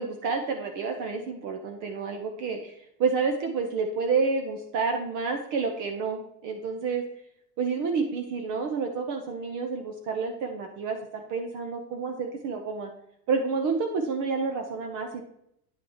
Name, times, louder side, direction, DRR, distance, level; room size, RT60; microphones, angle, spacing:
voice 1, 0.0-2.7 3.0-7.0 7.6-12.9 13.3-15.2, right 5 dB, 45° right, 4 dB, 0.9 m, -29 dB
9.2 x 5.9 x 2.9 m, 0.75 s
supercardioid pair, 140°, 44 cm